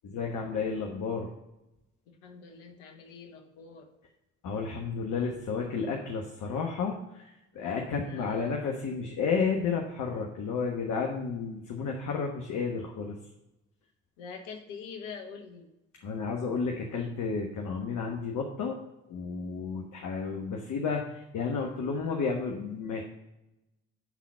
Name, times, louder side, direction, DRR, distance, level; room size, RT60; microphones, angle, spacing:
voice 1, 0.0-1.3 4.4-7.2 7.5-13.1 16.0-18.7 19.1-21.0 21.3-23.0, left 5 dB, 55° left, 1 dB, 1.3 m, -32 dB
voice 2, 2.2-3.9 7.9-8.6 14.2-15.7, left 5 dB, 75° left, 4 dB, 1.3 m, -44 dB
10.5 x 4.2 x 5.6 m, 0.92 s
hypercardioid pair, 45°, 35 cm